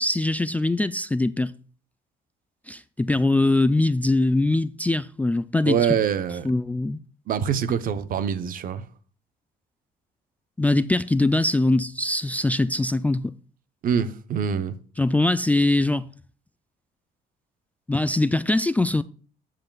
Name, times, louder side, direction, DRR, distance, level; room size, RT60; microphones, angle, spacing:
voice 1, 0.0-1.5 2.7-5.8 6.4-7.0 10.6-13.3 15.0-16.1 17.9-19.0, left 2 dB, 10° left, 0.3 m, -22 dB
voice 2, 5.6-6.5 7.3-8.8 13.8-14.7, right 7 dB, 55° right, 0.9 m, -24 dB
14.5 x 7.7 x 2.4 m
cardioid pair, 110°, 17 cm